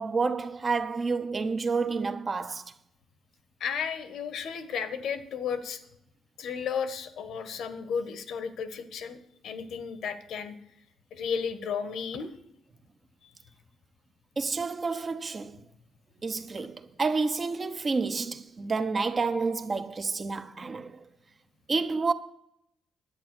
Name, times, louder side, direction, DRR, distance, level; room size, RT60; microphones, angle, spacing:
voice 1, 0.0-2.7 14.4-15.6 16.2-21.0 21.7-22.1, right 4 dB, 35° right, 0.9 m, -29 dB
voice 2, 3.6-5.8 6.4-9.2 9.4-10.5 11.1-12.3 13.2-13.3, left 6 dB, 70° left, 1.3 m, -33 dB
11.0 x 8.5 x 7.7 m
cardioid pair, 90°, 0 cm